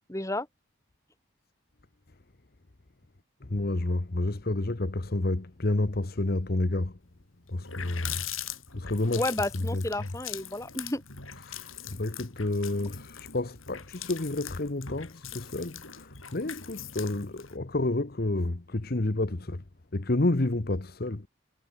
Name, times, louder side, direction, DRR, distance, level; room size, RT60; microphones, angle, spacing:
voice 1, 0.1-0.5 9.1-11.0, left 1 dB, 15° left, 2.2 m, -31 dB
voice 2, 3.4-7.0 7.5-8.2 8.7-10.1 11.4-19.6 19.9-21.3, left 2 dB, 50° left, 1.1 m, -30 dB
Water tap faucet, 7.1-7.2 7.5-17.6, left 9 dB, 85° left, 7.5 m, -41 dB
head